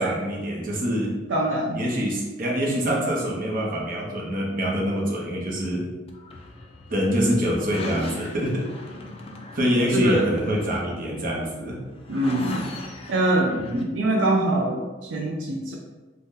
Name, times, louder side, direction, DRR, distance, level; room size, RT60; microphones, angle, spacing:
voice 1, 0.0-1.2 1.7-5.8 6.9-8.6 9.5-11.8, equal, 50° right, -3 dB, 0.7 m, -25 dB
voice 2, 1.3-1.8 9.9-10.5 12.1-12.7 13.1-15.7, right 1 dB, 75° right, -2 dB, 0.4 m, -24 dB
sound 1, 6.1-13.8, left 2 dB, 30° left, 0.3 m, -40 dB
2.7 x 2.1 x 3.6 m, 1.2 s
head